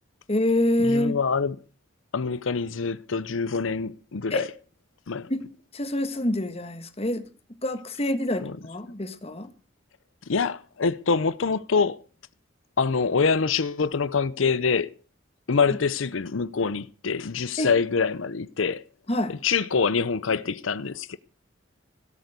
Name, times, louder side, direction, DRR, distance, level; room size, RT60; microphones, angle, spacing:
voice 1, 0.3-1.2 4.3-4.5 5.3-5.4 5.7-7.3 7.6-9.5 17.6-17.7 19.1-19.4, left 1 dB, 30° left, 1.7 m, -26 dB
voice 2, 0.8-1.6 2.1-4.5 5.1-5.3 8.4-8.5 10.3-12.0 12.8-14.9 15.5-18.8 19.3-21.2, left 5 dB, 85° left, 0.7 m, -25 dB
17.5 x 8.2 x 8.2 m
head